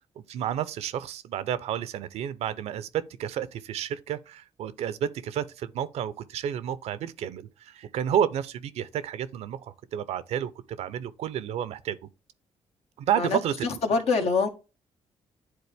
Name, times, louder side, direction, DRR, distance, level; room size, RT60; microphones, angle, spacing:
voice 1, 0.3-10.5 10.8-12.0 13.0-13.8, right 9 dB, 80° right, 0.6 m, -30 dB
voice 2, 13.1-14.5, left 4 dB, 70° left, 1.3 m, -25 dB
9.7 x 3.8 x 3.4 m
supercardioid pair, 65°, 11 cm